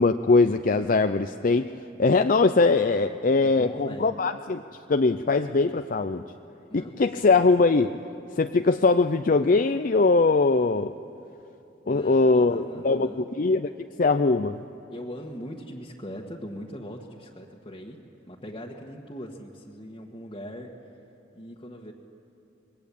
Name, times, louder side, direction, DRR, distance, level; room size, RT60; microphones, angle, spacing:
voice 1, 0.0-1.7 2.0-4.6 4.9-6.2 6.7-8.0 8.4-10.9 11.9-14.6, left 3 dB, 45° left, 8 dB, 0.5 m, -21 dB
voice 2, 3.4-4.1 6.7-6.9 11.9-13.3 14.9-20.7 21.3-21.9, equal, 30° left, -3 dB, 1.5 m, -40 dB
25.5 x 21.5 x 8.6 m, 2.8 s
head